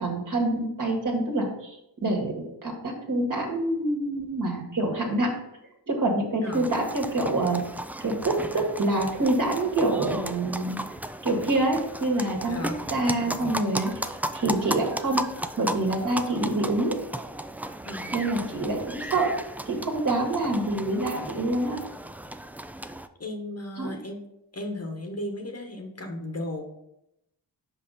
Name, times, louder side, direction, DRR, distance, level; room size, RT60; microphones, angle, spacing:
voice 1, 0.0-1.8 2.0-5.4 5.9-7.6 8.0-10.8 11.2-12.6 12.9-13.9 14.3-15.3 15.6-17.0 18.1-19.4 19.7-21.8 23.8-24.0, right 2 dB, 45° right, 0 dB, 2.0 m, -26 dB
sound 1, 6.5-23.1, right 1 dB, 5° right, 0.3 m, -35 dB
voice 2, 12.5-12.8 17.9-18.2 23.2-24.2 24.5-26.6, left 1 dB, 35° left, 4 dB, 1.1 m, -35 dB
5.5 x 5.0 x 4.1 m, 0.82 s
cardioid pair, 45°, 42 cm